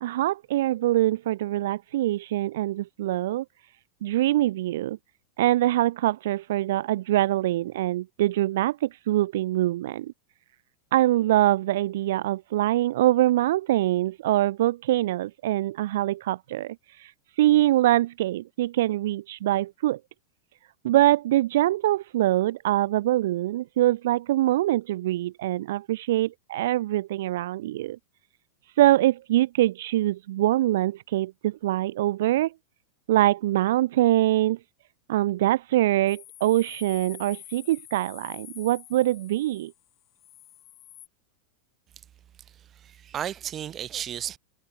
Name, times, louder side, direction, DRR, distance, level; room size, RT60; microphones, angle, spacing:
voice 1, 0.0-3.4 4.0-5.0 5.4-10.1 10.9-20.0 20.8-28.0 28.8-32.5 33.1-34.6 35.1-39.7, right 15 dB, 55° right, 0.8 m, -24 dB
sound 1, 36.1-41.1, left 13 dB, 30° left, 4.6 m, -47 dB
voice 2, 42.5-44.4, right 10 dB, 25° right, 2.5 m, -34 dB
figure-of-eight pair, 90°, 0 cm